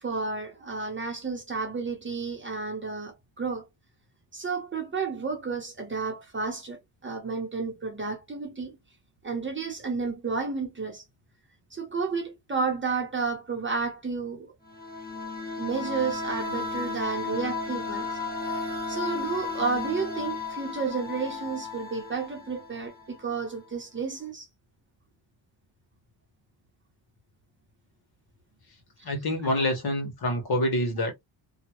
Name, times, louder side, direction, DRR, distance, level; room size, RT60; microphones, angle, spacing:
voice 1, 0.0-3.7 4.3-8.8 9.2-11.0 11.7-14.5 15.6-18.1 18.5-18.6 18.9-24.5 29.0-29.1 29.6-29.7, right 4 dB, 25° right, 0.9 m, -31 dB
sound 1, 14.7-23.3, left 4 dB, 20° left, 1.4 m, -34 dB
voice 2, 29.0-31.1, left 1 dB, 50° left, 1.4 m, -26 dB
2.9 x 2.4 x 3.0 m
wide cardioid pair, 135°, 47 cm